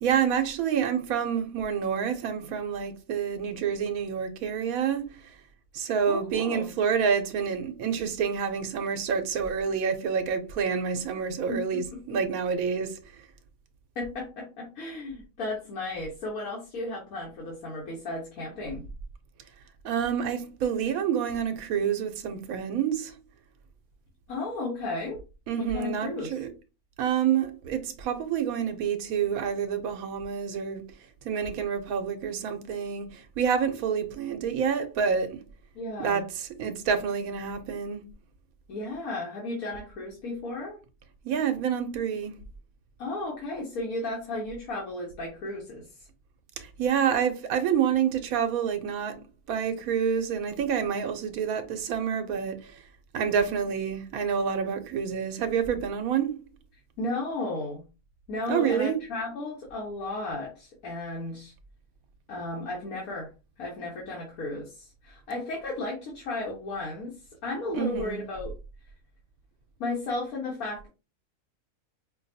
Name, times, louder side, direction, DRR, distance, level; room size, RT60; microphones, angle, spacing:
voice 1, 0.0-5.3 5.7-13.0 19.8-23.2 25.5-26.5 27.0-30.8 31.2-35.4 36.0-38.1 41.2-42.4 46.6-49.2 49.5-52.8 53.1-56.4 58.5-59.0 67.7-68.2, right 7 dB, 90° right, 1.1 m, -28 dB
voice 2, 6.1-6.7 11.5-11.8 13.9-18.8 24.3-25.2 25.6-26.4 35.7-36.2 38.7-40.8 43.0-45.9 57.0-57.8 58.3-61.5 62.3-63.3 63.6-67.1 67.4-68.5 69.8-70.9, left 2 dB, 85° left, 1.5 m, -34 dB
5.1 x 2.3 x 2.6 m
omnidirectional pair, 1.5 m